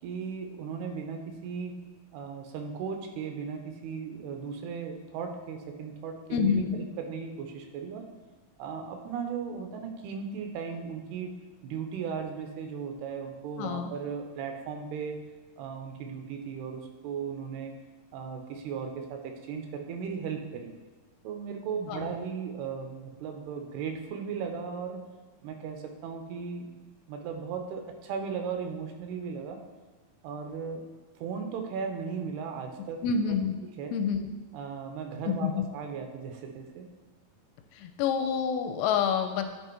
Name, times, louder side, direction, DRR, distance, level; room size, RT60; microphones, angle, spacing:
voice 1, 0.0-1.8 2.1-8.1 8.6-15.2 15.6-17.8 18.1-20.7 21.2-25.0 25.4-26.8 27.1-29.6 30.2-30.9 31.2-33.0 33.7-33.9 34.5-36.9, right 6 dB, 85° right, 5 dB, 2.8 m, -36 dB
voice 2, 6.3-6.8 13.6-13.9 21.9-22.1 33.0-33.6 33.9-34.3 35.3-35.7 37.7-39.5, left 6 dB, 80° left, 6 dB, 2.4 m, -28 dB
10.0 x 3.4 x 4.5 m, 1.3 s
omnidirectional pair, 4.5 m